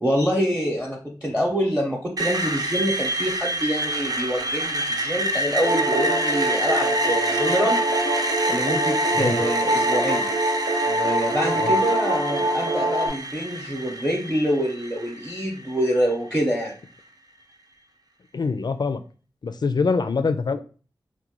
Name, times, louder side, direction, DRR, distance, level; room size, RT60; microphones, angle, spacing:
voice 1, 0.0-7.8 8.5-10.3 10.9-16.8, equal, 5° right, -2 dB, 0.8 m, -26 dB
Screech, 2.2-16.1, right 1 dB, 50° right, 0.5 m, -28 dB
sound 1, 5.6-13.1, right 1 dB, 75° right, 1.1 m, -24 dB
voice 2, 18.3-19.0 19.4-20.6, left 4 dB, 55° left, 11 dB, 0.4 m, -24 dB
3.6 x 2.2 x 2.9 m, 0.38 s
wide cardioid pair, 65°, 8 cm